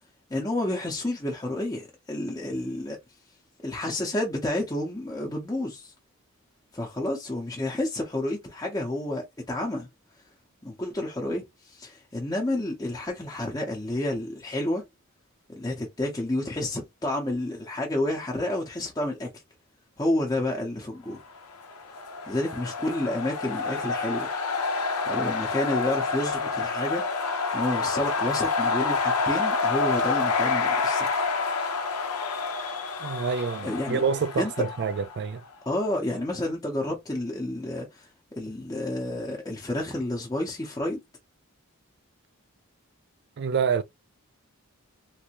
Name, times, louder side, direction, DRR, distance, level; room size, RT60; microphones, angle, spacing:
voice 1, 0.3-3.0 3.6-5.9 6.7-9.9 10.6-14.8 15.5-19.3 20.0-21.2 22.3-24.3 25.1-31.2 33.6-34.0 34.4-34.7 35.7-38.1 38.4-41.0, left 1 dB, 15° left, 0.7 m, -30 dB
sound 1, 21.5-35.3, left 4 dB, 90° left, 0.8 m, -28 dB
voice 2, 33.0-35.4 43.4-43.8, right 6 dB, 50° right, 0.3 m, -27 dB
3.3 x 2.6 x 2.9 m
head